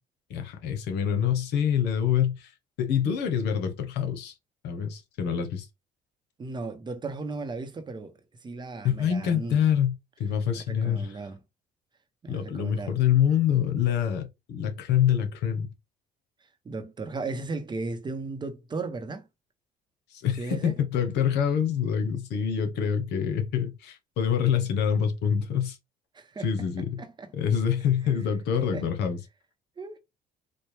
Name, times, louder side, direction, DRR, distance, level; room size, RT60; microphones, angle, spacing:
voice 1, 0.3-2.5 2.8-4.3 4.6-5.7 8.8-9.9 10.2-11.1 12.3-15.7 20.1-25.8 26.4-27.0 27.3-29.2, left 8 dB, 85° left, 0.9 m, -26 dB
voice 2, 6.4-8.1 8.4-9.6 10.5-11.4 12.2-13.0 16.6-19.3 20.4-20.7 26.1-26.7 27.0-27.3 28.7-28.9 29.8-30.0, right 3 dB, 25° right, 0.7 m, -36 dB
4.3 x 2.2 x 3.2 m
cardioid pair, 110°, 17 cm